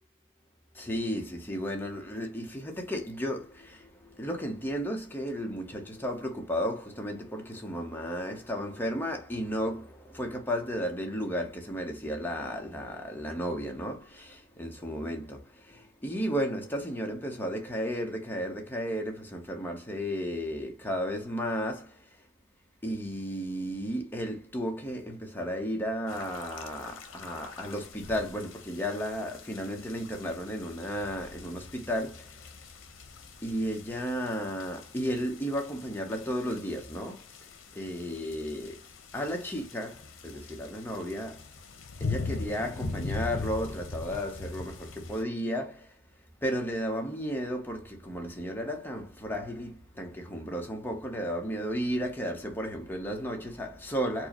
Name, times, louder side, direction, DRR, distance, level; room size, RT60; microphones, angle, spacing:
voice 1, 0.7-22.2 22.8-32.6 33.4-38.8 39.1-41.4 42.0-46.0 46.4-54.3, equal, 10° left, 0.8 m, -34 dB
sound 1, 26.1-45.2, left 3 dB, 85° left, 0.7 m, -41 dB
4.5 x 2.1 x 2.9 m
head